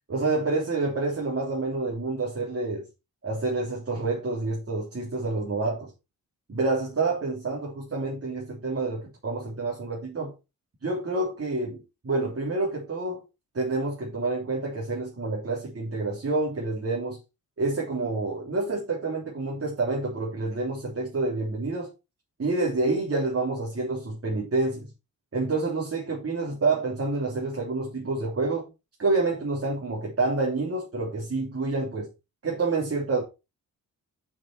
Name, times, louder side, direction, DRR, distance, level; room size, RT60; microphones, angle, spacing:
voice 1, 0.1-2.9 3.2-5.9 6.5-10.3 10.8-13.2 13.5-17.2 17.6-21.9 22.4-24.9 25.3-28.7 29.0-32.1 32.4-33.2, right 3 dB, 40° right, 3.1 m, -28 dB
7.3 x 6.0 x 4.6 m
cardioid pair, 95°, 36 cm